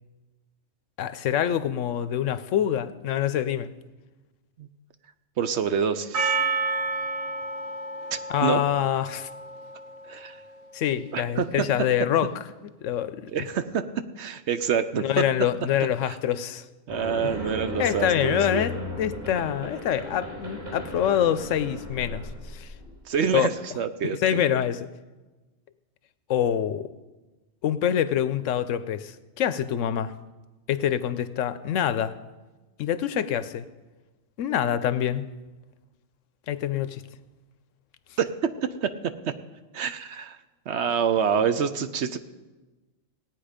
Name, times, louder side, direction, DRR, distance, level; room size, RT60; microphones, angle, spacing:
voice 1, 1.0-3.7 8.3-9.3 10.7-12.3 12.8-13.3 15.0-16.6 17.8-22.7 23.3-23.5 24.2-24.8 26.3-26.9 27.6-30.1 30.7-32.1 32.8-33.7 34.4-35.2 36.5-37.0, left 10 dB, 75° left, 14 dB, 1.0 m, -25 dB
voice 2, 5.4-6.3 8.1-8.6 10.1-10.4 11.1-11.7 13.3-13.8 14.2-15.2 16.1-16.2 16.9-18.6 23.1-24.4 38.2-39.3 39.7-40.4 40.7-42.2, right 7 dB, 65° right, 11 dB, 0.9 m, -27 dB
Percussion, 6.1-10.5, right 3 dB, 85° right, 1.6 m, -30 dB
sound 1, 16.9-23.0, left 1 dB, 45° right, 4.3 m, -35 dB
17.5 x 9.2 x 5.0 m, 1.2 s
omnidirectional pair, 1.3 m